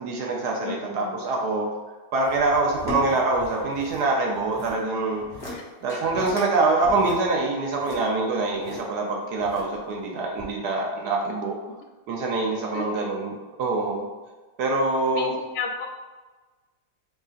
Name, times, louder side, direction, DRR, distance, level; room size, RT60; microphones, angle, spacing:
voice 1, 0.0-1.7 2.1-5.2 5.8-11.5 12.1-14.1 14.6-15.4, right 3 dB, 75° right, -1 dB, 1.2 m, -25 dB
voice 2, 0.6-1.1 5.5-5.6 12.7-12.9 15.1-15.9, left 4 dB, 80° left, 2 dB, 1.2 m, -32 dB
sound 1, 2.2-4.0 4.3-4.8 5.2-5.6 5.9-6.5 6.8-8.8 9.4-9.9 10.4-10.5, equal, 35° left, 1.3 m, -38 dB
4.8 x 3.9 x 2.5 m, 1.3 s
omnidirectional pair, 1.8 m